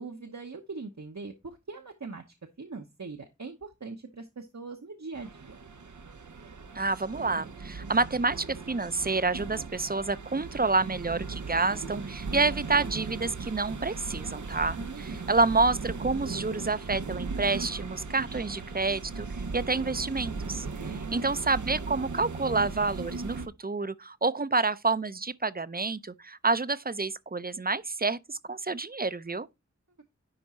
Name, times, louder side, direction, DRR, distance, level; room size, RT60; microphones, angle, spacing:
voice 1, 0.0-2.2 2.6-5.6 14.7-15.3 20.9-21.4, right 4 dB, 70° right, 1.0 m, -41 dB
sound 1, 5.1-23.5, right 4 dB, 90° right, 0.7 m, -38 dB
voice 2, 6.7-14.8 15.3-29.5, right 3 dB, 30° right, 0.5 m, -28 dB
10.5 x 3.6 x 4.2 m
wide cardioid pair, 40°, 29 cm